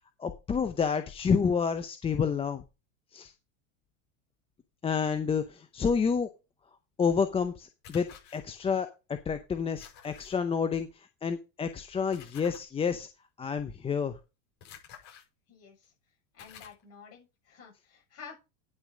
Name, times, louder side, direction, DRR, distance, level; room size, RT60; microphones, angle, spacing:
voice 1, 0.2-2.6 3.1-3.3 4.8-6.3 7.0-13.1 13.4-14.2, left 6 dB, 15° left, 9 dB, 0.6 m, -29 dB
sound 1, 7.8-8.4 9.8-10.3 12.1-12.6 14.6-15.2 15.8-15.9 16.4-16.8, left 8 dB, 60° left, 7.4 m, -50 dB
voice 2, 15.5-15.9 16.3-18.3, left 6 dB, 35° left, 0 dB, 6.7 m, -50 dB
10.5 x 6.1 x 5.0 m, 0.27 s
supercardioid pair, 135°, 40 cm